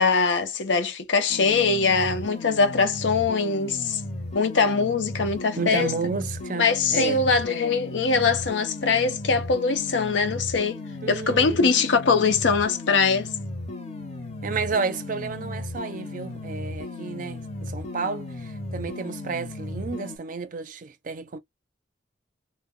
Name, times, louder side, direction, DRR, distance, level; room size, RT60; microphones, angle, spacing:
voice 1, 0.0-4.0 4.3-5.9 6.6-10.8 11.1-13.3, left 4 dB, 80° left, 0.6 m, -22 dB
sound 1, 1.3-20.2, left 2 dB, 35° left, 0.7 m, -36 dB
voice 2, 5.6-7.2 11.0-11.7 14.4-21.4, right 4 dB, 45° right, 0.5 m, -31 dB
2.2 x 2.0 x 3.6 m
head